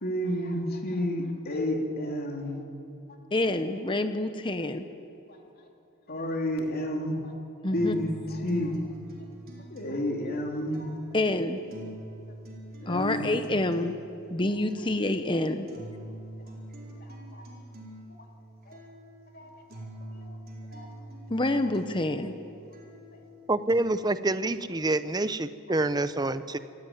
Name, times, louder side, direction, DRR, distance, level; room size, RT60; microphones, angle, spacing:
voice 1, 0.0-2.6 5.3-5.4 6.1-7.3 7.7-8.7 9.7-10.9 12.8-13.3 17.3-17.4 18.7-18.8 19.3-19.5 20.2-20.3 20.7-20.8, left 1 dB, 45° left, 1 dB, 3.0 m, -30 dB
voice 2, 3.3-4.9 7.6-8.0 11.1-11.6 12.9-13.9 14.3-15.7 21.3-22.3, left 2 dB, 20° left, 9 dB, 0.8 m, -27 dB
sound 1, 7.7-23.7, right 1 dB, 45° right, 4.5 m, -45 dB
voice 3, 23.5-26.6, right 2 dB, 20° right, 13 dB, 0.6 m, -27 dB
26.0 x 15.0 x 9.4 m, 2.8 s
head